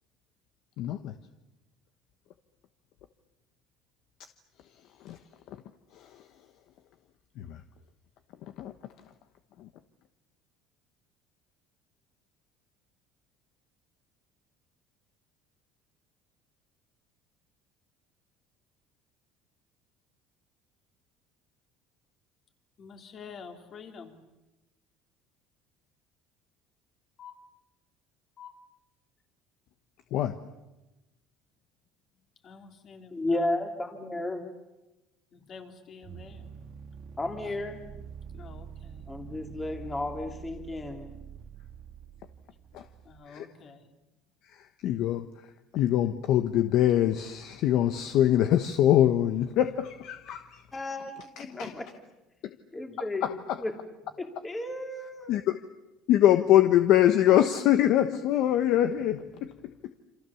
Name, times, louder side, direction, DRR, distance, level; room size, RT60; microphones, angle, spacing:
voice 1, 0.8-1.1 5.0-5.2 5.5-5.6 5.9-6.2 7.4-7.6 8.4-8.7 9.6-9.7 30.1-30.4 42.7-42.8 43.3-43.5 44.4-45.5 45.7-50.6 51.4-51.7 52.4-52.5 53.2-53.6 55.3-55.5 56.1-60.0, left 12 dB, 60° left, 9 dB, 1.1 m, -24 dB
voice 2, 22.8-24.2 27.2-27.4 28.4-28.6 32.4-33.5 35.3-36.5 37.4-37.5 38.3-39.1 43.0-43.9, left 5 dB, 35° left, 5 dB, 3.1 m, -48 dB
voice 3, 33.1-34.4 37.2-37.8 39.1-41.1 50.7-51.9 52.7-53.3 53.6-53.7 54.2-55.4, left 2 dB, 15° left, 4 dB, 2.6 m, -33 dB
sound 1, 36.0-43.2, right 7 dB, 40° right, 1.4 m, -46 dB
28.0 x 27.0 x 7.1 m, 1.0 s
cardioid pair, 145°, 0 cm